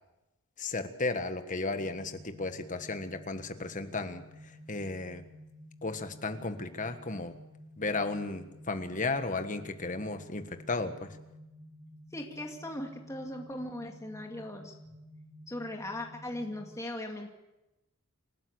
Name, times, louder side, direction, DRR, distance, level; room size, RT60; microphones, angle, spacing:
voice 1, 0.6-5.2 5.8-7.3 7.8-11.2, left 3 dB, 35° left, 8 dB, 1.5 m, -34 dB
sound 1, 1.7-16.7, equal, 10° right, 7.8 m, -52 dB
voice 2, 12.1-14.7 15.5-17.3, left 1 dB, 15° left, 2 dB, 2.3 m, -39 dB
28.0 x 12.5 x 8.1 m, 0.98 s
head